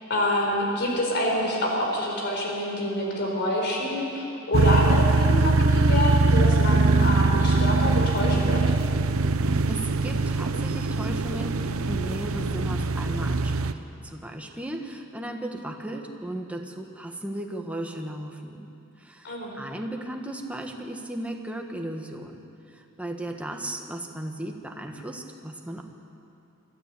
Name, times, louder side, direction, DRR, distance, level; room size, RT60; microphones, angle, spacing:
voice 1, 0.1-8.8 19.2-19.5, left 1 dB, 55° left, 0 dB, 4.2 m, -26 dB
sound 1, 4.5-13.7, right 3 dB, 85° right, 0.8 m, -22 dB
voice 2, 9.7-18.7 19.0-25.8, right 1 dB, 5° right, 2 dB, 1.5 m, -36 dB
24.5 x 13.5 x 8.5 m, 2.6 s
head